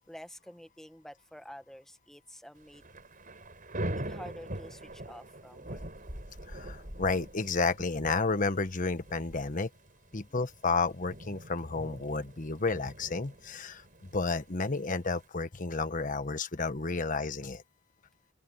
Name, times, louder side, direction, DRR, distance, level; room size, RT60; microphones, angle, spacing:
voice 1, 0.1-2.8 4.0-5.8 10.1-10.4, equal, ahead, 1.5 m, -49 dB
Thunder / Rain, 2.6-15.3, right 1 dB, 40° right, 5.7 m, -43 dB
voice 2, 6.5-9.7 10.1-13.8 14.1-17.6, left 3 dB, 40° left, 1.2 m, -31 dB
open air
head